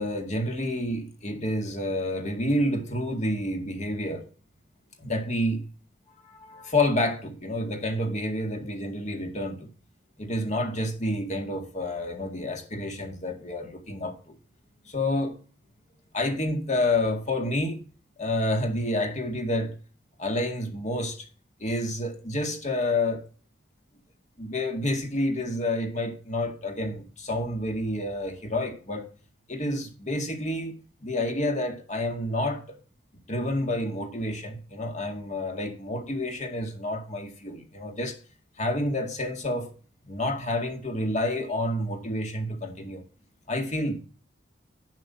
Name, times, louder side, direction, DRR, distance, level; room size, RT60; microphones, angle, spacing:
voice 1, 0.0-4.3 5.0-5.6 6.2-9.7 10.2-14.3 14.9-15.4 16.1-17.8 18.2-19.7 20.2-21.3 21.6-23.2 24.4-29.1 29.5-30.8 31.0-32.8 33.3-38.2 38.6-39.7 40.0-43.0 43.5-44.0, left 1 dB, 40° left, 2.1 m, -29 dB
11.0 x 5.8 x 4.3 m
head